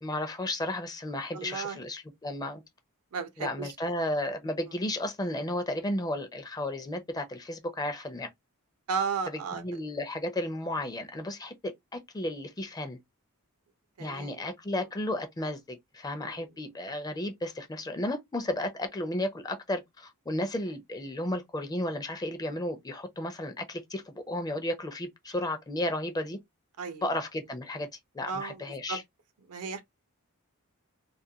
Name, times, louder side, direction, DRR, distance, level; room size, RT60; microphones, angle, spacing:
voice 1, 0.0-2.6 3.4-8.3 9.3-13.0 14.0-26.4 27.0-27.9 28.1-29.0, left 1 dB, 15° left, 0.4 m, -33 dB
voice 2, 1.3-1.8 3.1-3.7 8.9-9.6 14.0-14.4 16.2-16.4 26.8-27.0 28.3-28.6 28.9-29.0 29.5-29.8, right 5 dB, 80° right, 0.6 m, -34 dB
2.4 x 2.1 x 2.7 m
head